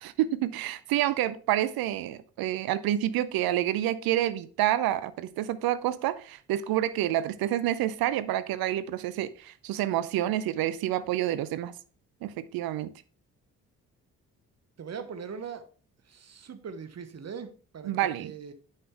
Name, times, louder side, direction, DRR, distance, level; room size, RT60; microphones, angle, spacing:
voice 1, 0.0-11.7 12.2-12.9 17.8-18.3, right 13 dB, 55° right, 0.7 m, -28 dB
voice 2, 14.8-15.7 16.1-18.5, right 6 dB, 40° right, 1.2 m, -41 dB
9.2 x 5.7 x 3.4 m
figure-of-eight pair, 40°, 42 cm